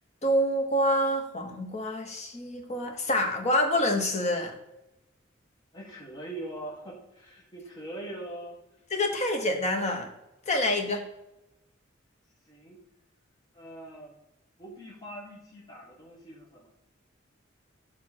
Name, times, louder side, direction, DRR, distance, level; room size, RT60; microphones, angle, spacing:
voice 1, 0.2-4.5 8.9-10.1 10.5-11.0, left 1 dB, 35° left, 3 dB, 1.1 m, -27 dB
voice 2, 5.7-8.6 12.5-12.8 13.5-14.2 14.6-16.7, right 1 dB, 20° left, -5 dB, 1.8 m, -42 dB
8.6 x 3.5 x 6.2 m, 0.91 s
head